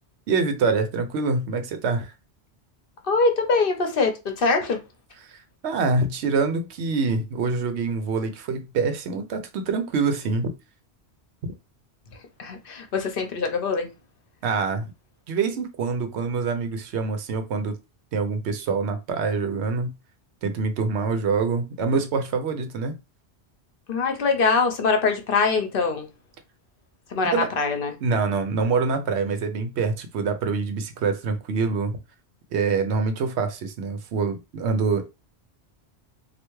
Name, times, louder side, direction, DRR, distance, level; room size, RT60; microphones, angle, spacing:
voice 1, 0.3-2.1 5.3-10.5 11.4-11.5 14.4-14.9 15.3-17.8 18.1-19.9 20.4-23.0 27.2-27.5 28.0-32.0 32.5-35.1, right 4 dB, 85° right, 0.9 m, -25 dB
voice 2, 3.0-4.8 12.4-13.9 23.9-26.1 27.1-27.9, left 4 dB, 60° left, 0.8 m, -23 dB
3.3 x 2.4 x 3.0 m
omnidirectional pair, 1.1 m